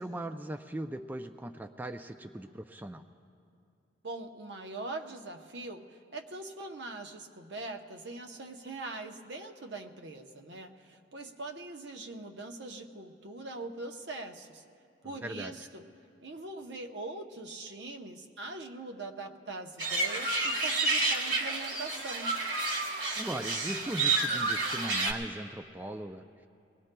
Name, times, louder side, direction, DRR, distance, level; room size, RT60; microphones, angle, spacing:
voice 1, 0.0-3.0 15.2-15.5 23.2-26.5, right 1 dB, 10° right, 6 dB, 0.3 m, -39 dB
voice 2, 4.0-14.6 15.0-15.9 16.2-22.4, right 2 dB, 70° right, 4 dB, 0.8 m, -42 dB
sound 1, 19.8-25.1, right 3 dB, 85° right, 1.7 m, -30 dB
24.5 x 19.0 x 2.2 m, 2.5 s
head